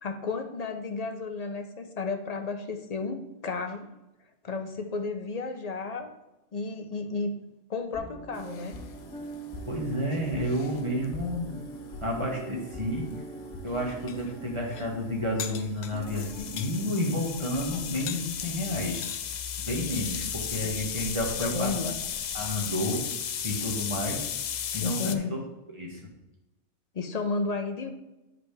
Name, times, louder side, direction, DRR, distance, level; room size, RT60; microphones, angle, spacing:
voice 1, 0.0-3.9 4.4-6.1 6.5-7.4 7.7-8.8 20.6-20.7 21.4-21.9 24.8-25.4 26.9-27.9, left 4 dB, 40° left, 6 dB, 0.6 m, -32 dB
sound 1, 7.9-19.3 19.6-19.7, right 1 dB, 5° left, 1.8 m, -44 dB
sound 2, 8.4-25.2, left 8 dB, 85° left, 0.4 m, -36 dB
voice 2, 9.7-11.6 12.0-13.0 13.6-19.0 19.7-21.7 22.3-23.0 23.4-24.3 24.7-25.4 25.7-26.0, equal, 25° right, -1 dB, 1.7 m, -30 dB
9.6 x 5.0 x 3.4 m, 1.0 s
omnidirectional pair, 1.3 m